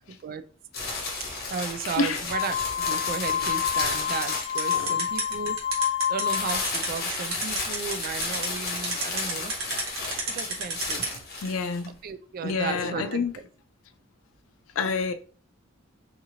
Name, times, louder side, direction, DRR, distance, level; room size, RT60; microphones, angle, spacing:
voice 1, 0.1-0.4 1.2-9.5 10.3-11.6 11.9-13.4, right 6 dB, 45° right, 0.3 m, -35 dB
Rustling Packing Paper, 0.7-5.3 6.2-11.9, left 3 dB, 55° left, 0.9 m, -33 dB
sound 1, 2.3-6.7, left 9 dB, 25° left, 0.6 m, -28 dB
sound 2, 4.6-11.1, right 4 dB, 90° right, 1.0 m, -29 dB
voice 2, 11.4-11.9 12.4-13.3 14.8-15.1, left 4 dB, 85° left, 0.4 m, -27 dB
2.8 x 2.5 x 2.7 m
head